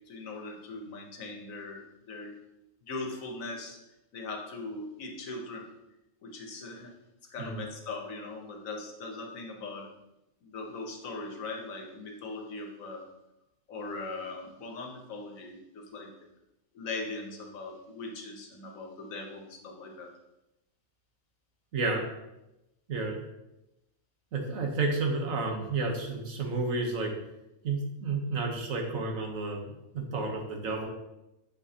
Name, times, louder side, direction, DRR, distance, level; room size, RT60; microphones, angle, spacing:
voice 1, 0.1-2.4 2.8-3.8 4.1-5.7 6.2-6.9 7.3-9.9 10.4-13.0 13.7-16.1 16.7-20.1, left 3 dB, 90° left, 3 dB, 1.4 m, -40 dB
voice 2, 21.7-22.0 22.9-23.2 24.3-27.1 27.6-30.9, right 3 dB, 85° right, 2 dB, 1.5 m, -31 dB
7.0 x 5.2 x 2.8 m, 0.92 s
omnidirectional pair, 1.4 m